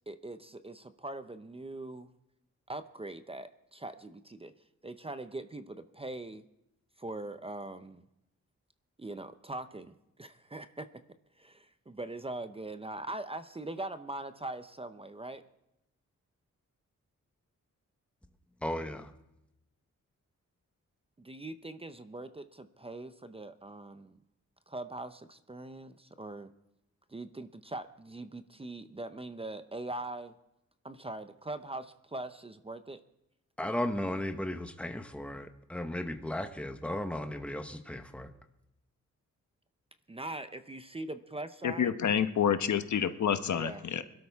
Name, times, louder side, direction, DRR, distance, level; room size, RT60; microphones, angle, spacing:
voice 1, 0.1-2.1 2.7-4.5 4.8-6.4 7.0-8.0 9.0-10.9 11.4-15.4 21.2-24.2 24.7-26.5 27.1-30.3 30.8-33.0 40.1-41.9 43.5-43.8, right 2 dB, 20° right, 10 dB, 0.6 m, -42 dB
voice 2, 18.6-19.1 33.6-38.3, left 1 dB, 5° left, 7 dB, 1.1 m, -35 dB
voice 3, 41.6-44.0, left 8 dB, 75° left, 9 dB, 1.0 m, -28 dB
22.0 x 12.5 x 3.5 m, 0.86 s
wide cardioid pair, 110°, 30 cm